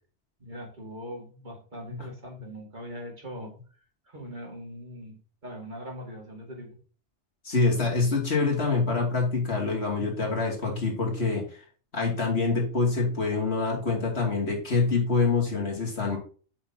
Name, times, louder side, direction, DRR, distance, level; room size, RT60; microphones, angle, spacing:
voice 1, 0.4-3.5 4.1-6.8, equal, 40° right, 1 dB, 2.3 m, -41 dB
voice 2, 7.4-11.6 11.9-16.2, left 4 dB, 65° left, -1 dB, 3.0 m, -26 dB
8.4 x 5.9 x 2.9 m, 0.39 s
omnidirectional pair, 1.2 m